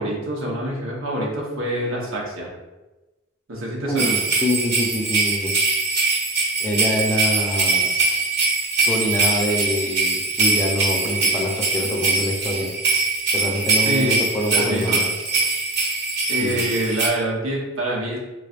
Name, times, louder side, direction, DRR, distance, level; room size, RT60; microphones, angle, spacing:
voice 1, 0.0-2.5 3.5-4.1 13.8-14.2 14.5-15.0 16.3-18.2, right 1 dB, 90° right, -3 dB, 1.0 m, -26 dB
voice 2, 3.9-5.5 6.6-7.9 8.9-12.7 13.3-15.1 16.4-16.7, equal, 10° left, -1 dB, 0.5 m, -25 dB
sound 1, 4.0-17.1, right 3 dB, 60° right, 1.1 m, -22 dB
3.9 x 3.2 x 2.5 m, 1.1 s
head